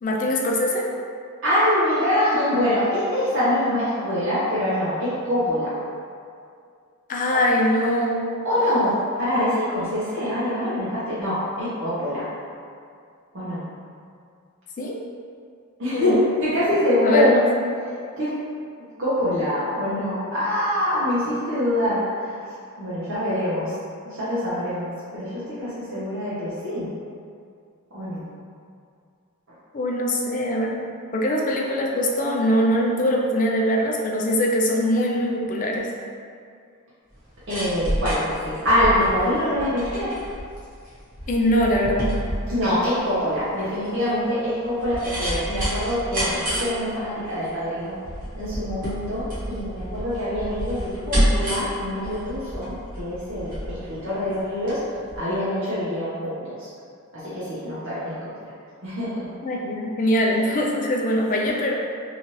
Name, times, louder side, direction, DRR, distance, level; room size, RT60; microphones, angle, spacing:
voice 1, 0.0-0.9 7.1-8.4 14.8-15.0 15.9-16.2 17.0-17.7 29.7-35.9 41.3-42.2 59.4-61.7, equal, 35° left, -1 dB, 0.3 m, -22 dB
voice 2, 1.4-5.7 8.4-12.3 13.3-13.6 15.8-16.1 16.4-17.3 18.2-18.3 19.0-23.7 24.0-26.9 27.9-28.3 37.5-40.1 42.5-48.0 48.4-54.8 55.2-56.7 57.1-58.1 58.8-59.2 61.4-61.5, left 1 dB, 55° right, -11 dB, 0.7 m, -24 dB
sound 1, 37.1-54.8 55.1-55.2, equal, 35° right, 1.0 m, -29 dB
2.8 x 2.4 x 3.0 m, 2.3 s
head